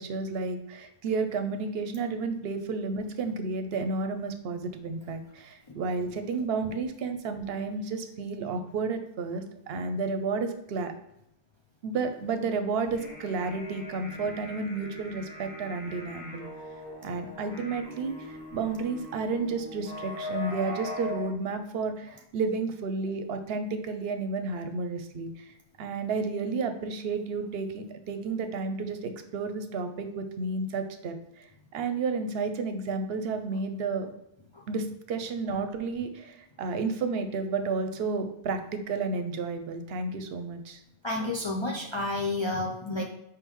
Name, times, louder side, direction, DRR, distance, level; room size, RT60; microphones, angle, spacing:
voice 1, 0.0-10.9 11.8-16.4 17.0-25.5 25.8-34.1 34.7-40.8, right 4 dB, 75° right, 8 dB, 0.8 m, -32 dB
sound 1, 12.8-21.3, left 2 dB, 85° left, 1.7 m, -41 dB
voice 2, 41.0-43.0, left 2 dB, 45° left, -1 dB, 0.3 m, -30 dB
4.8 x 3.6 x 3.0 m, 0.81 s
omnidirectional pair, 1.0 m